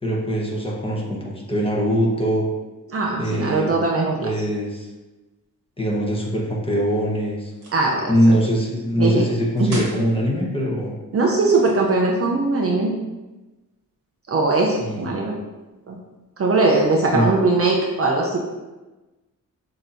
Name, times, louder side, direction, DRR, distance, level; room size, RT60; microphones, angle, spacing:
voice 1, 0.0-2.5 3.2-3.7 4.2-4.9 5.8-7.5 8.1-10.9 14.6-15.1 17.1-17.3, equal, 15° left, -3 dB, 1.0 m, -22 dB
voice 2, 2.9-4.3 7.7-8.4 9.0-9.3 9.6-9.8 11.1-12.9 14.3-15.4 15.9-16.0 16.4-18.4, right 3 dB, 45° right, -1 dB, 0.6 m, -20 dB
sound 1, 7.5-7.9 9.6-10.1 11.3-12.3, right 2 dB, 65° right, 1.2 m, -36 dB
6.2 x 2.8 x 2.6 m, 1.1 s
wide cardioid pair, 110°, 33 cm